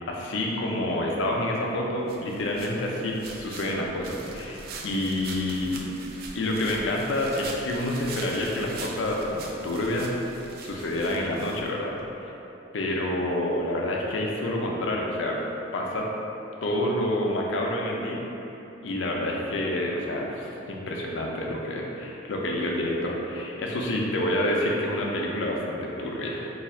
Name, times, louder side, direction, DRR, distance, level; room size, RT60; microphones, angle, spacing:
voice 1, 0.0-5.8 6.3-10.1 10.6-12.3 12.7-15.4 15.7-16.1 16.6-18.2 18.8-26.5, left 1 dB, 75° left, -1 dB, 0.5 m, -28 dB
sound 1, 2.1-12.1, right 3 dB, 50° right, 0.3 m, -42 dB
2.7 x 2.4 x 4.2 m, 3.0 s
head